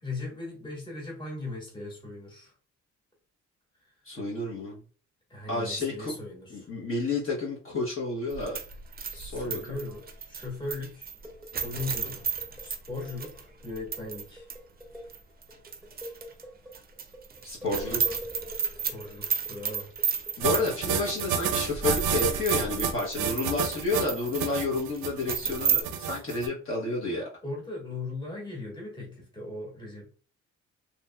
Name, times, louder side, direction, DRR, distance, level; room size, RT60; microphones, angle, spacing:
voice 1, 0.0-2.5 5.3-6.7 9.1-11.1 11.6-12.3 12.6-14.5 18.9-19.9 20.5-20.6 27.4-30.2, left 2 dB, 15° left, -2 dB, 1.4 m, -38 dB
voice 2, 4.0-4.8 5.5-6.1 6.5-8.6 9.1-9.6 17.4-18.2 20.4-27.3, left 3 dB, 45° left, -5 dB, 1.1 m, -30 dB
sound 1, 8.3-14.2 14.5-14.6 15.1-16.4 16.7-25.8, right 7 dB, 30° right, 0.5 m, -33 dB
sound 2, 8.8-10.8 11.1-12.7 13.0-20.7 21.2-21.3, equal, ahead, 1.0 m, -46 dB
sound 3, 20.4-26.5, right 7 dB, 85° right, 0.4 m, -29 dB
2.9 x 2.5 x 2.2 m, 0.40 s
cardioid pair, 90°, 30 cm